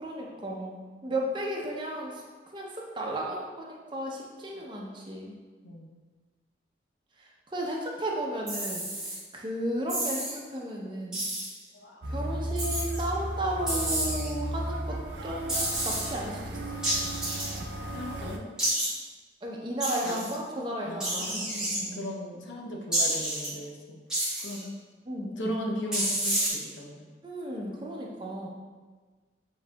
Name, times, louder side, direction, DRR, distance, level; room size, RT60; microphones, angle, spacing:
voice 1, 0.0-2.2 2.5-5.3 7.2-11.2 12.1-15.0 15.2-16.6 17.0-17.2 19.4-22.1 25.1-25.6 27.2-28.5, right 1 dB, 25° right, -2 dB, 0.6 m, -34 dB
sound 1, 8.5-9.2 9.9-10.3 11.1-11.5 12.6-13.0 13.7-14.3 15.5-16.1 16.8-17.6 18.6-18.9 19.8-20.3 21.0-21.8 22.9-23.5 24.1-24.6 25.9-26.5, right 1 dB, 5° right, 1.1 m, -30 dB
voice 2, 11.7-12.1 17.9-18.5 20.0-20.3 20.8-21.5 21.9-24.0 24.4-24.7 25.4-27.1, equal, 85° left, 0 dB, 0.7 m, -37 dB
sound 2, 12.0-18.4, equal, 70° right, 0.5 m, -35 dB
7.1 x 2.7 x 2.2 m, 1.4 s
head